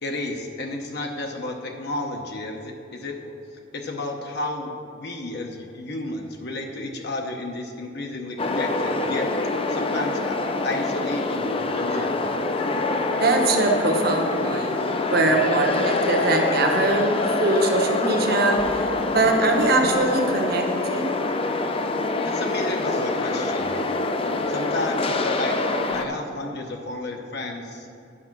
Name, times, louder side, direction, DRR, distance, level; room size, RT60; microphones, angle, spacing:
voice 1, 0.0-3.4 3.7-10.4 10.6-12.1 22.2-23.8 24.5-27.9, left 2 dB, 55° left, 2 dB, 0.8 m, -32 dB
sound 1, 8.4-26.1, left 2 dB, 30° left, 0.5 m, -25 dB
voice 2, 13.2-14.8 15.1-21.2, right 2 dB, 50° right, 2 dB, 1.1 m, -22 dB
9.8 x 6.1 x 5.9 m, 2.5 s
head